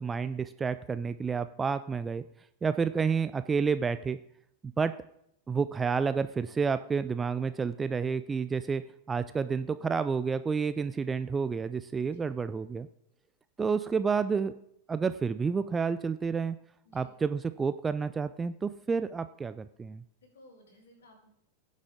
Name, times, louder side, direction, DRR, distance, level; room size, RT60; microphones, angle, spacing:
voice 1, 0.0-2.2 2.6-4.2 4.6-4.9 5.5-8.8 9.1-12.9 13.6-14.5 14.9-16.6 16.9-20.0, right 5 dB, 15° right, 12 dB, 0.4 m, -30 dB
voice 2, 16.8-17.1 20.2-21.3, left 1 dB, 60° left, -1 dB, 5.0 m, -58 dB
17.0 x 7.4 x 3.7 m, 0.72 s
figure-of-eight pair, 90°, 0 cm